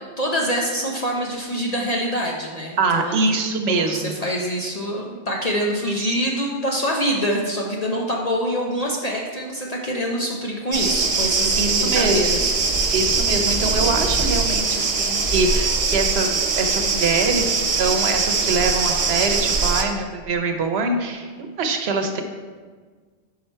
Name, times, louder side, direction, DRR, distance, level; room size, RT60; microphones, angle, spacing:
voice 1, 0.0-3.2 3.7-13.0, equal, 45° left, -1 dB, 0.7 m, -25 dB
voice 2, 2.8-4.1 5.8-6.1 11.6-12.2 12.9-22.2, right 3 dB, 75° right, 5 dB, 1.0 m, -24 dB
sound 1, 10.7-19.8, right 4 dB, 40° right, 0.6 m, -22 dB
5.6 x 5.5 x 4.4 m, 1.5 s
omnidirectional pair, 1.1 m